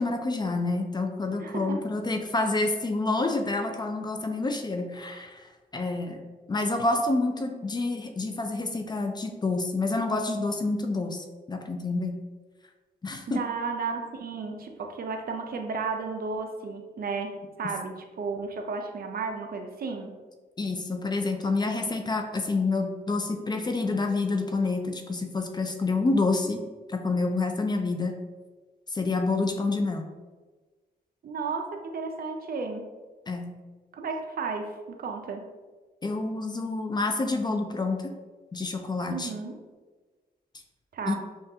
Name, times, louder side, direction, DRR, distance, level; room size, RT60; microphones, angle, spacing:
voice 1, 0.0-5.5 5.7-6.2 6.5-12.2 13.0-13.4 20.6-26.6 26.9-28.2 28.9-30.0 33.3-33.5 36.0-38.1 38.5-39.3 41.1-41.2, left 3 dB, 25° left, 4 dB, 0.3 m, -28 dB
voice 2, 1.4-1.8 13.3-20.1 31.2-32.8 33.9-35.4 39.1-39.6 40.9-41.2, right 4 dB, 65° right, 4 dB, 0.5 m, -33 dB
5.5 x 2.4 x 2.7 m, 1.3 s
wide cardioid pair, 130°, 17 cm